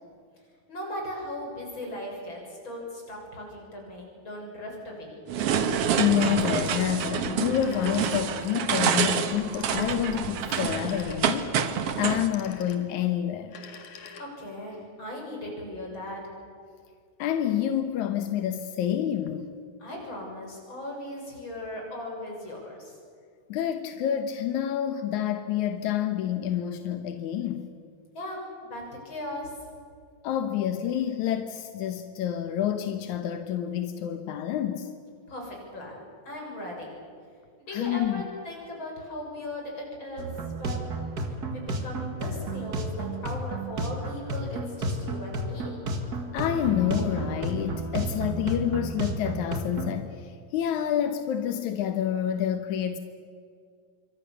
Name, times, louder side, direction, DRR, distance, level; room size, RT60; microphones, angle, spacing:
voice 1, 0.7-5.2 14.2-16.2 19.8-23.0 28.1-29.5 35.3-36.9 37.6-45.7, left 1 dB, 25° left, 7.4 m, -38 dB
sound 1, 5.3-12.3, right 8 dB, 80° right, 1.3 m, -27 dB
voice 2, 6.0-13.6 17.2-19.5 23.5-27.7 30.2-34.9 37.7-38.2 46.3-53.0, left 10 dB, 70° left, 1.9 m, -28 dB
Telephone, 6.4-8.6 9.4-11.5 12.2-13.0 13.4-14.6, left 5 dB, 55° left, 2.8 m, -46 dB
sound 2, 40.2-50.0, right 2 dB, 45° right, 1.2 m, -32 dB
27.0 x 24.5 x 6.9 m
omnidirectional pair, 4.8 m